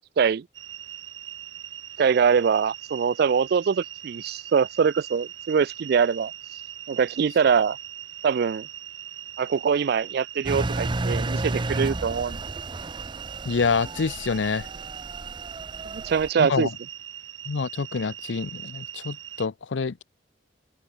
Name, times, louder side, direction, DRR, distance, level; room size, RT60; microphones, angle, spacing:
sound 1, 0.5-19.5, right 10 dB, 90° right, 3.0 m, -41 dB
voice 1, 2.0-6.3 6.9-7.8 8.2-8.7 9.4-12.4 15.8-16.7, right 6 dB, 55° right, 0.3 m, -23 dB
Engine, 10.5-16.3, right 2 dB, 25° right, 0.7 m, -32 dB
voice 2, 13.5-14.7 16.4-16.7 17.5-20.0, left 5 dB, 80° left, 0.6 m, -27 dB
head